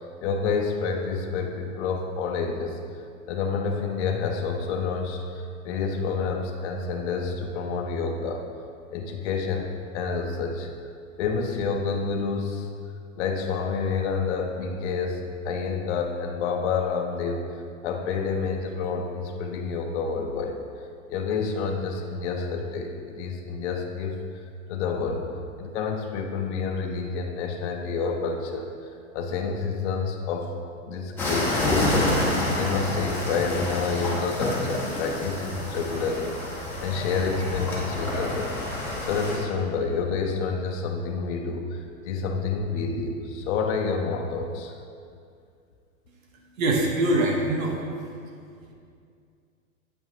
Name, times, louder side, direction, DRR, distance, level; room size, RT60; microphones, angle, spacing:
voice 1, 0.0-8.4 8.9-9.7 9.9-10.7 11.2-12.7 13.2-17.4 17.8-20.6 21.1-24.4 24.7-25.2 25.6-30.5 30.9-44.7, left 5 dB, 55° left, 2 dB, 0.8 m, -29 dB
sound 1, 31.2-39.4, left 2 dB, 5° left, 1.2 m, -28 dB
voice 2, 46.6-47.7, right 2 dB, 70° right, 0 dB, 1.2 m, -23 dB
8.5 x 5.6 x 2.9 m, 2.4 s
hypercardioid pair, 130°, 42 cm